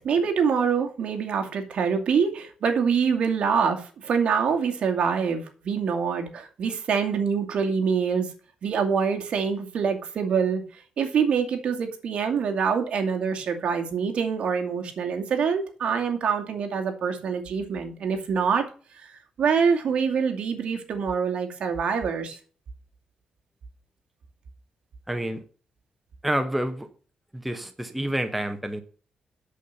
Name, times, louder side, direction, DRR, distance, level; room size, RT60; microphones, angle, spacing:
voice 1, 0.0-8.3 8.6-10.6 11.0-18.7 19.0-19.1 19.4-22.4, right 6 dB, 55° right, 4 dB, 2.4 m, -25 dB
voice 2, 25.1-25.4 26.2-26.9 27.3-28.8, right 1 dB, 5° right, 7 dB, 1.0 m, -28 dB
8.3 x 7.4 x 6.7 m, 0.39 s
wide cardioid pair, 155°, 2 cm